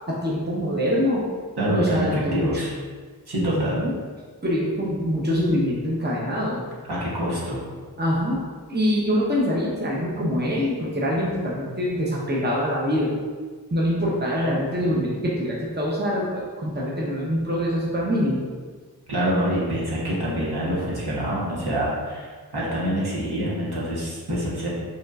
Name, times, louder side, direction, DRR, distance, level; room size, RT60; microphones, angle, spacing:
voice 1, 0.1-1.2 1.7-2.6 3.4-3.9 4.4-6.6 8.0-8.4 8.7-13.2 13.7-18.5, equal, 25° right, -5 dB, 0.8 m, -24 dB
voice 2, 1.6-2.7 3.3-3.8 6.8-7.6 19.1-24.7, equal, 70° right, -6 dB, 1.2 m, -26 dB
5.1 x 3.1 x 2.4 m, 1.5 s
wide cardioid pair, 40°, 40 cm